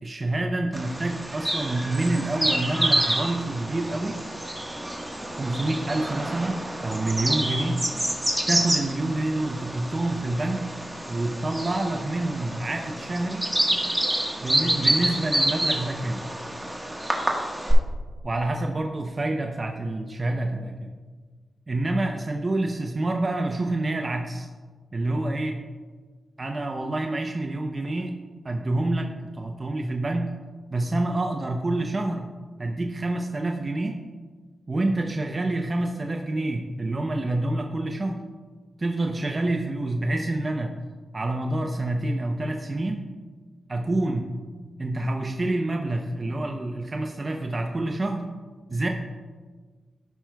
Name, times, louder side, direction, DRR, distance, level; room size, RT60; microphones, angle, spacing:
voice 1, 0.0-4.2 5.3-7.8 8.5-10.6 11.1-13.5 14.4-16.2 18.2-20.9 21.7-24.5 24.9-25.6 26.4-28.2 28.4-30.3 30.7-32.3 32.6-34.0 34.7-38.2 38.8-40.8 41.1-43.1 43.7-44.3 44.8-48.3 48.7-48.9, right 2 dB, 35° right, 2 dB, 0.6 m, -27 dB
Bird vocalization bird call bird song, 0.7-17.7, right 1 dB, 10° right, 1.4 m, -28 dB
14.5 x 5.8 x 2.3 m, 1.4 s
cardioid pair, 75°, 0 cm